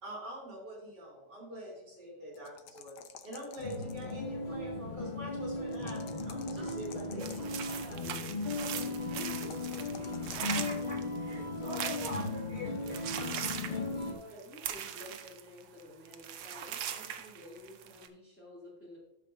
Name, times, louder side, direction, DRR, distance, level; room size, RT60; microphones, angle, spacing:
voice 1, 0.0-7.3, equal, 65° right, -4 dB, 3.5 m, -44 dB
sound 1, 2.3-4.2 5.7-8.0 9.4-11.0, left 8 dB, 70° left, 1.2 m, -51 dB
sound 2, 3.6-14.1, left 3 dB, 35° left, 0.9 m, -37 dB
voice 2, 7.1-9.5 10.0-10.1 13.6-19.0, left 1 dB, 5° left, -6 dB, 3.0 m, -51 dB
sound 3, 7.2-12.4 12.8-18.1, right 9 dB, 85° right, 1.4 m, -40 dB
voice 3, 10.4-13.0, right 1 dB, 45° right, -5 dB, 3.2 m, -43 dB
12.5 x 6.6 x 2.7 m, 0.90 s
omnidirectional pair, 2.0 m